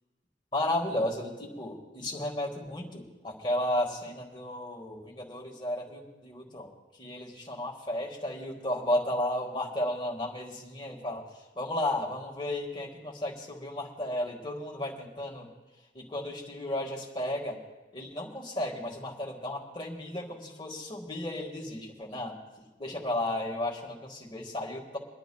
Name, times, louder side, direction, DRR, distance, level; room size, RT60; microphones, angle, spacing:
voice 1, 0.5-6.7 7.0-11.2 11.6-15.5 16.0-17.6 17.9-22.4 22.8-25.0, left 1 dB, 25° left, -2 dB, 1.7 m, -33 dB
29.5 x 10.5 x 2.3 m, 1.1 s
head